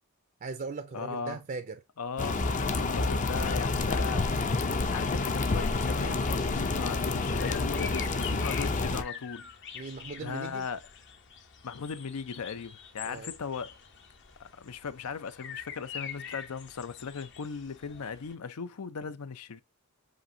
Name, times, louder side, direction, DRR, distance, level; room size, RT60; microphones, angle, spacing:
voice 1, 0.4-1.8 9.7-10.7 13.1-13.3, right 4 dB, 40° right, 0.4 m, -39 dB
voice 2, 0.9-1.4 2.0-4.3 4.9-9.5 10.2-10.8 11.6-13.8 14.4-19.6, left 5 dB, 80° left, 0.5 m, -38 dB
sound 1, 2.2-9.0, left 3 dB, 35° left, 0.5 m, -29 dB
sound 2, 4.8-18.3, left 7 dB, 55° left, 0.8 m, -46 dB
7.6 x 2.6 x 2.6 m
head